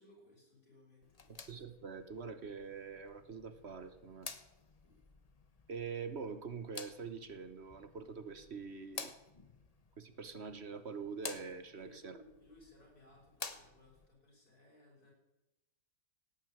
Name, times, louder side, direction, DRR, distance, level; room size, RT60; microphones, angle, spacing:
voice 1, 0.0-1.4 4.8-5.0 11.7-15.1, left 1 dB, 85° left, -1 dB, 6.4 m, -62 dB
sound 1, 1.0-14.1, left 4 dB, 30° left, 0.9 m, -52 dB
voice 2, 1.3-4.3 5.7-9.1 10.0-12.2, right 5 dB, 45° right, 11 dB, 1.3 m, -45 dB
17.0 x 9.4 x 8.8 m, 0.97 s
omnidirectional pair, 1.6 m